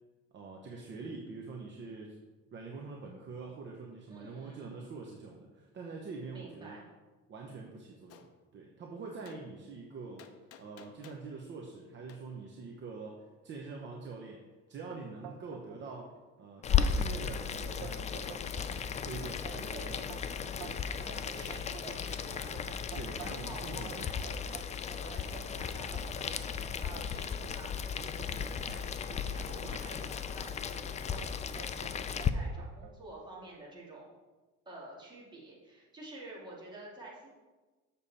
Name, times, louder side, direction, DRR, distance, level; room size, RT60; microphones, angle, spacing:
voice 1, 0.3-2.2 2.5-6.8 7.3-8.3 8.5-10.3 10.6-18.4 19.0-20.0 20.6-21.2 22.9-24.3, right 4 dB, 40° right, 0 dB, 0.9 m, -45 dB
voice 2, 4.1-4.7 6.3-6.8 19.7-20.7 21.1-24.4 24.9-34.1 34.7-37.3, right 1 dB, 15° right, -6 dB, 2.5 m, -50 dB
Gunshot gunfire, 8.1-8.3 9.3-9.4 10.2-11.3 12.1-12.2, left 9 dB, 55° left, 0.7 m, -54 dB
sound 1, 14.9-15.8 16.1-16.6 17.0-17.1 17.5-18.7 19.2-23.5 23.9-26.5 27.1-27.2 27.7-30.8 31.6-31.9 32.2-33.0, right 8 dB, 70° right, 1.1 m, -50 dB
Boiling, 16.6-32.3, left 7 dB, 25° left, 0.3 m, -35 dB
7.0 x 7.0 x 4.2 m, 1.2 s
cardioid pair, 145°, 29 cm